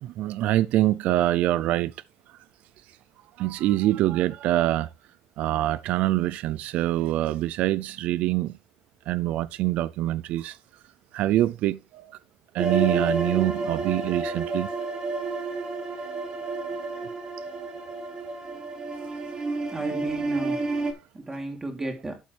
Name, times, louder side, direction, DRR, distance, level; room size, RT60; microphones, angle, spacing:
voice 1, 0.0-1.9 3.4-4.9 5.4-8.5 9.1-10.6 11.1-12.1 12.5-14.7, right 15 dB, 75° right, 0.5 m, -25 dB
sound 1, 12.6-20.9, right 3 dB, 35° right, 4.3 m, -30 dB
voice 2, 19.7-20.7 21.1-22.2, right 2 dB, 15° right, 3.2 m, -33 dB
12.0 x 8.4 x 3.4 m
cardioid pair, 145°, 2 cm